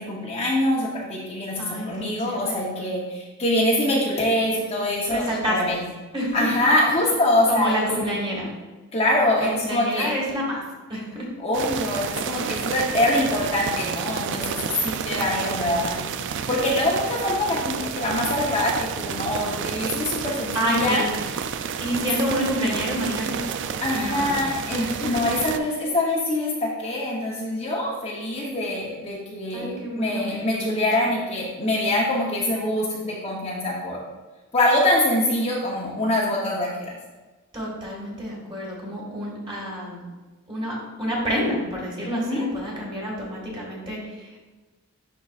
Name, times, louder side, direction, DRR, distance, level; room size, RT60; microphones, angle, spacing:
voice 1, 0.0-5.8 6.3-7.9 8.9-10.1 11.4-15.9 16.5-21.0 21.9-22.1 23.8-34.0 34.5-36.9 42.0-42.4, left 1 dB, 25° left, -4 dB, 0.8 m, -24 dB
voice 2, 1.6-2.7 5.1-5.8 6.1-6.5 7.5-8.5 9.4-10.6 10.9-11.3 15.3-16.0 20.3-21.1 21.8-23.4 23.9-25.3 25.6-25.8 29.5-31.1 37.5-40.0 40.5-44.4, equal, 20° right, -4 dB, 1.8 m, -29 dB
sound 1, 11.5-25.6, right 7 dB, 55° right, 0.3 m, -30 dB
10.5 x 3.9 x 2.4 m, 1.2 s
head